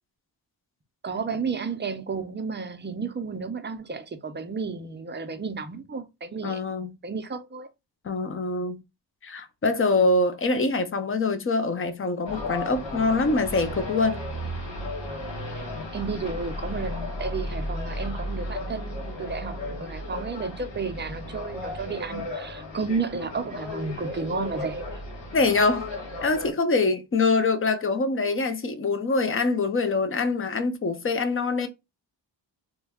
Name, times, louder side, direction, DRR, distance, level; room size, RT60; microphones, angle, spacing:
voice 1, 1.0-6.6 7.0-7.7 15.5-15.7 15.9-24.8, right 4 dB, 25° right, 0.5 m, -32 dB
voice 2, 6.4-6.9 8.0-8.8 9.2-14.2 25.3-25.9 26.2-31.7, left 3 dB, 30° left, 0.5 m, -24 dB
sound 1, 12.2-26.5, left 1 dB, 80° left, 1.7 m, -34 dB
3.2 x 2.2 x 3.4 m
wide cardioid pair, 120°, 44 cm